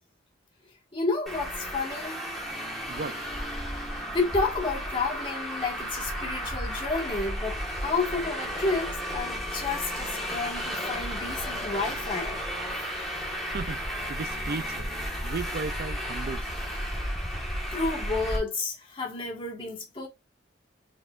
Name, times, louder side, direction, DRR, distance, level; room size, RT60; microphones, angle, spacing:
voice 1, 0.9-2.2 4.1-12.4 17.7-20.1, left 3 dB, 25° left, 1.6 m, -31 dB
Traffic noise roadway noise, 1.3-18.4, equal, ahead, 1.4 m, -33 dB
voice 2, 2.9-3.3 13.5-14.9 15.2-16.5, right 4 dB, 50° right, 0.4 m, -36 dB
4.8 x 4.3 x 2.4 m
head